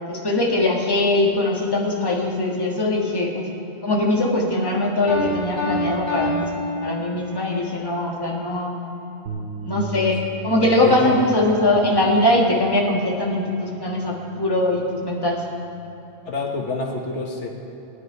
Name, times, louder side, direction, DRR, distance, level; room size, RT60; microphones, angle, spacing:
voice 1, 0.1-3.4 3.8-8.7 9.6-15.4, left 1 dB, 20° left, -2 dB, 1.5 m, -21 dB
Piano, 5.1-7.5, left 1 dB, 35° left, 3.7 m, -27 dB
sound 1, 9.3-15.5, right 4 dB, 85° right, 1.3 m, -38 dB
voice 2, 10.8-11.2 11.6-11.8 16.3-17.5, left 4 dB, 85° left, 0 dB, 1.6 m, -27 dB
17.0 x 10.0 x 4.7 m, 3.0 s
omnidirectional pair, 1.2 m